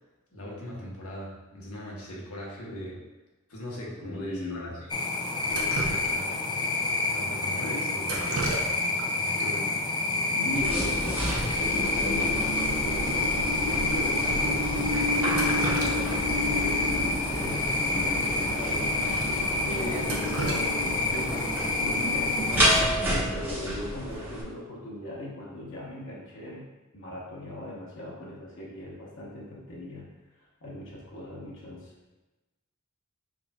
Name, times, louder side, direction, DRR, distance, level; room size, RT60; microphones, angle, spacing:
voice 1, 0.3-3.0 3.5-4.8 5.4-6.5 7.1-8.7 9.2-9.8 16.9-17.0 19.7-20.3, left 1 dB, 85° left, -3 dB, 1.1 m, -39 dB
voice 2, 4.0-4.8 10.3-16.9 17.3-21.3 21.8-22.9 23.3-26.7 26.9-30.1 30.6-31.9, left 1 dB, 60° left, -5 dB, 1.0 m, -38 dB
sound 1, 4.9-22.8, left 3 dB, 20° left, 0.3 m, -28 dB
Drip, 5.5-6.5 8.0-9.1 9.4-9.5 10.4-10.5 10.8-11.0 11.3-11.4 11.9-12.0 12.4-12.5 13.1-13.2 13.9-14.0 15.1-16.3 16.7-16.8 18.1-18.2 18.6-18.7 19.2-19.3 19.8-21.4 23.4-23.7 24.1-24.5, right 2 dB, 70° right, 0.7 m, -35 dB
sound 2, 10.5-24.4, equal, 10° right, 1.0 m, -30 dB
5.0 x 3.9 x 2.3 m, 1.1 s
head